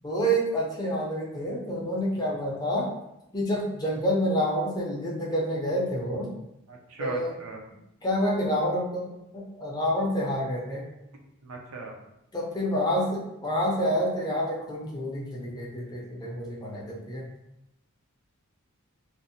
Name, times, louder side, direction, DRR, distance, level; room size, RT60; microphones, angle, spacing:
voice 1, 0.0-2.9 3.3-6.3 7.0-7.3 8.0-10.9 12.3-17.3, equal, 20° left, -3 dB, 0.4 m, -28 dB
voice 2, 6.7-7.6 11.4-11.9, right 3 dB, 65° right, 0 dB, 0.5 m, -38 dB
2.5 x 2.0 x 2.6 m, 0.86 s
head